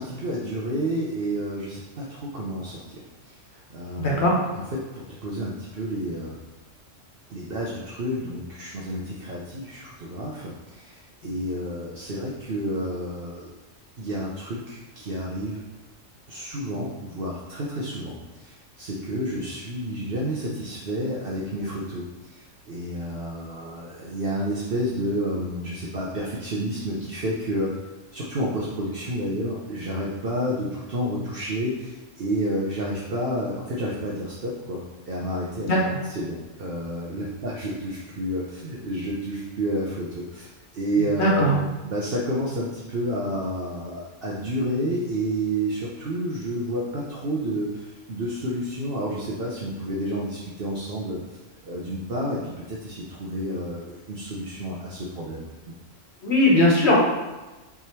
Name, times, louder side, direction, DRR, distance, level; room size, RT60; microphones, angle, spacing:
voice 1, 0.0-4.2 4.7-6.4 7.3-13.5 14.0-15.6 16.3-27.7 28.1-35.8 36.1-51.4 51.6-55.5, equal, 50° right, -4 dB, 1.0 m, -30 dB
voice 2, 3.9-4.3 11.2-11.3 35.7-36.0 41.0-41.6 56.2-57.0, left 1 dB, 60° left, -3 dB, 1.5 m, -20 dB
5.9 x 3.5 x 4.5 m, 1.1 s
omnidirectional pair, 1.3 m